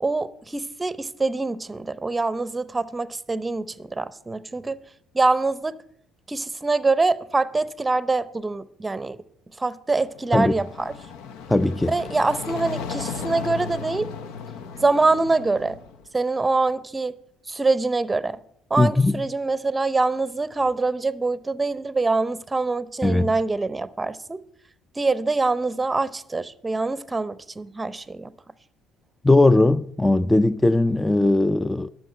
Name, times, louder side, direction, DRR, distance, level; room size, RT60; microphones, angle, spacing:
voice 1, 0.0-4.8 5.1-5.8 6.3-9.2 9.6-10.9 11.9-14.1 14.8-15.8 16.1-17.2 17.5-18.4 18.7-24.4 25.0-28.3, right 3 dB, 20° right, 0.7 m, -24 dB
sound 1, 10.1-16.1, left 5 dB, 80° left, 0.7 m, -35 dB
voice 2, 11.5-11.9 18.8-19.2 23.0-23.3 29.2-31.9, left 2 dB, 10° left, 0.4 m, -19 dB
11.5 x 6.0 x 7.6 m
supercardioid pair, 70°, 0 cm